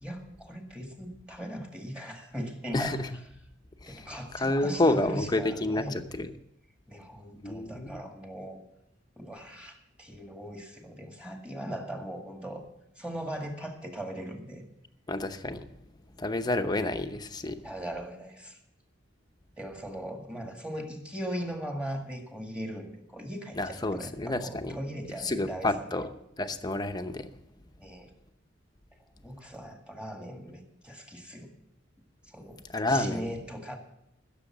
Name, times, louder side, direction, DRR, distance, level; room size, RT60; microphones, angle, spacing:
voice 1, 0.0-3.0 3.9-6.0 6.9-8.6 9.2-12.7 13.0-14.6 17.6-18.6 19.6-25.9 27.8-28.1 29.2-31.5 32.3-32.6 32.9-33.8, equal, 5° right, 2 dB, 1.9 m, -39 dB
voice 2, 2.7-3.1 3.8-6.3 7.4-8.0 15.1-15.6 16.2-17.6 23.6-24.8 25.2-26.1 26.4-27.3 32.7-33.3, left 2 dB, 20° left, 8 dB, 0.8 m, -29 dB
15.5 x 7.0 x 7.3 m, 0.79 s
head